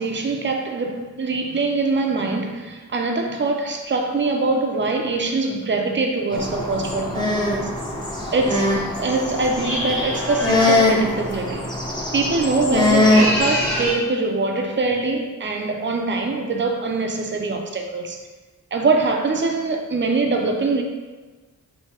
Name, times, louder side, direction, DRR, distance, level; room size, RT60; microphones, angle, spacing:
voice 1, 0.0-7.7 8.3-11.7 12.1-18.2 18.7-20.8, right 3 dB, 35° right, 3 dB, 0.5 m, -23 dB
sound 1, 6.3-13.9, left 2 dB, 10° left, 0.6 m, -22 dB
sound 2, 9.6-10.8 12.9-14.0, equal, 35° left, 1.2 m, -26 dB
3.3 x 2.7 x 4.3 m, 1.3 s
wide cardioid pair, 85°, 35 cm